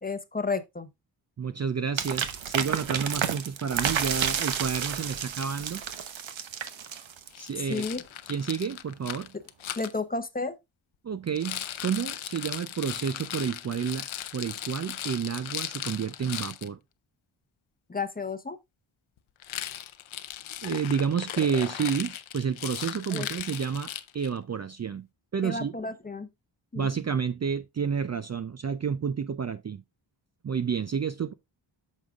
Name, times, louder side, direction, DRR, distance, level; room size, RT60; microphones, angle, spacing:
voice 1, 0.0-0.9 7.6-8.0 9.8-10.6 17.9-18.6 23.1-23.3 25.4-26.3 26.7-26.9, left 3 dB, 20° left, 0.8 m, -32 dB
voice 2, 1.4-5.8 7.4-7.9 8.3-9.3 11.0-14.1 14.3-16.8 20.6-25.1 25.3-25.7 26.8-29.8 30.4-31.3, right 6 dB, 35° right, 0.4 m, -30 dB
sound 1, 2.0-7.5, right 8 dB, 75° right, 1.0 m, -30 dB
Rattle, 7.3-9.9 11.3-16.7 19.4-24.4, left 11 dB, 80° left, 0.7 m, -37 dB
8.7 x 6.4 x 2.4 m
wide cardioid pair, 115°, 47 cm